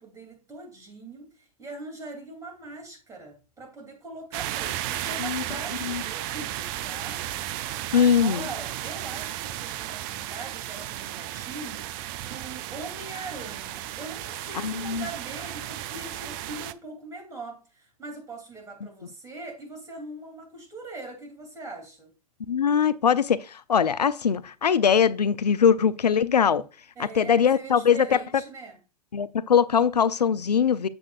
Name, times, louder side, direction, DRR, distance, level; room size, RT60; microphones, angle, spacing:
voice 1, 0.0-7.2 7.6-11.9 12.2-22.1 27.0-28.8, right 2 dB, 15° right, 2.8 m, -41 dB
sound 1, 4.3-16.7, right 13 dB, 35° right, 0.4 m, -34 dB
voice 2, 7.9-8.5 14.5-15.1 22.5-26.7 27.0-28.2 29.1-30.9, left 7 dB, 85° left, 0.4 m, -22 dB
7.6 x 7.3 x 2.4 m
figure-of-eight pair, 105°, 20 cm